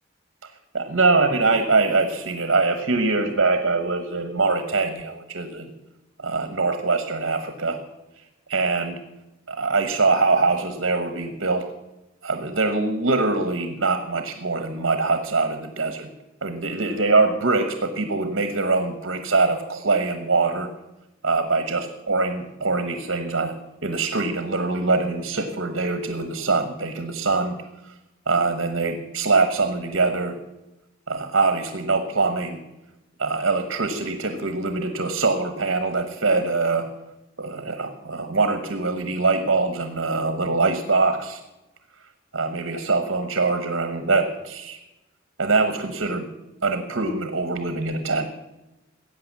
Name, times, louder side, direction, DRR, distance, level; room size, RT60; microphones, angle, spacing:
voice 1, 0.7-5.7 6.2-7.8 8.5-9.0 9.5-11.6 12.2-16.1 16.4-20.7 21.2-23.6 23.8-27.6 28.3-30.4 31.1-32.6 33.2-36.9 37.4-41.4 42.3-44.8 45.4-46.3 46.6-48.3, right 3 dB, 65° right, 8 dB, 1.1 m, -23 dB
14.0 x 8.6 x 7.4 m, 0.98 s
head